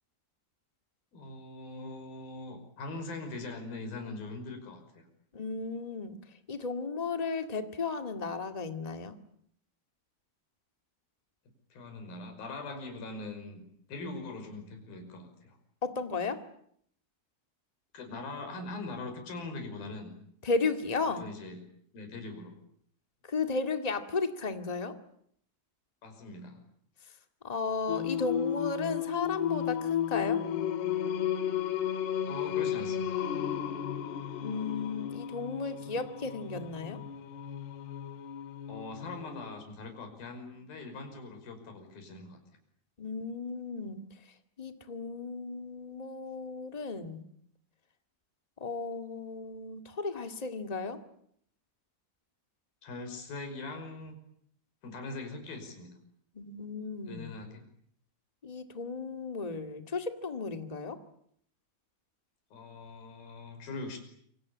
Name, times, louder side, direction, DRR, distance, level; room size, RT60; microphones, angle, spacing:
voice 1, 1.1-5.1 11.7-13.6 13.9-15.6 17.9-20.1 21.2-21.6 21.9-22.6 26.0-26.6 31.6-31.8 32.2-33.2 38.7-42.4 52.8-54.2 54.8-55.9 57.1-57.6 62.5-64.0, left 3 dB, 60° left, 6 dB, 7.3 m, -42 dB
voice 2, 5.3-6.2 6.5-9.1 15.8-16.4 20.4-21.2 23.3-25.0 27.4-30.4 34.4-37.0 43.0-44.0 44.6-47.2 48.6-51.0 56.3-57.3 58.4-61.0, left 4 dB, 35° left, 7 dB, 0.6 m, -34 dB
Singing, 27.9-39.6, left 9 dB, 80° left, 3.5 m, -33 dB
27.0 x 25.5 x 8.6 m, 0.68 s
omnidirectional pair, 4.7 m